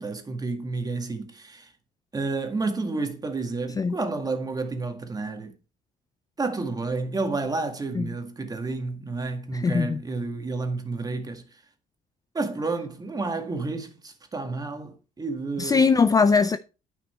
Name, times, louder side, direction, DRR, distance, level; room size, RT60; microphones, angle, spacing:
voice 1, 0.0-1.7 2.1-5.5 6.4-11.6 12.3-15.9, right 3 dB, 20° right, 1.9 m, -30 dB
voice 2, 9.5-10.0 15.6-16.6, left 5 dB, 20° left, 0.4 m, -20 dB
9.7 x 6.0 x 4.4 m
cardioid pair, 110°, 17 cm